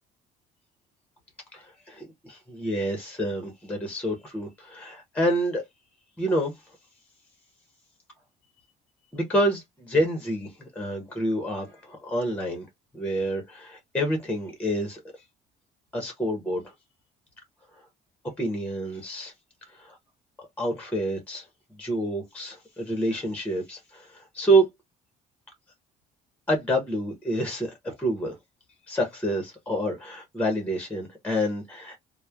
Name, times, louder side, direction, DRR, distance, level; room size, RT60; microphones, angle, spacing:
voice 1, 1.5-5.6 6.2-6.5 9.1-12.7 12.9-15.0 15.9-16.7 18.4-19.3 19.7-20.0 20.4-21.5 21.8-24.7 26.5-28.3 28.9-32.0, right 1 dB, 10° left, 0.9 m, -28 dB
3.1 x 2.1 x 2.3 m
cardioid pair, 110°, 17 cm